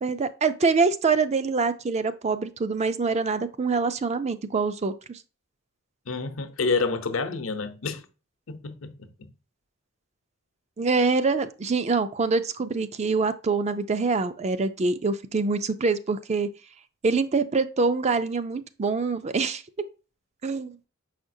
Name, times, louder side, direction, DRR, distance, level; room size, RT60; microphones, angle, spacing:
voice 1, 0.0-5.2 10.8-16.5 17.0-19.6 20.4-20.8, right 4 dB, 35° right, 0.4 m, -25 dB
voice 2, 6.1-8.1 8.5-9.3, left 4 dB, 80° left, 0.8 m, -29 dB
7.0 x 5.0 x 2.7 m
head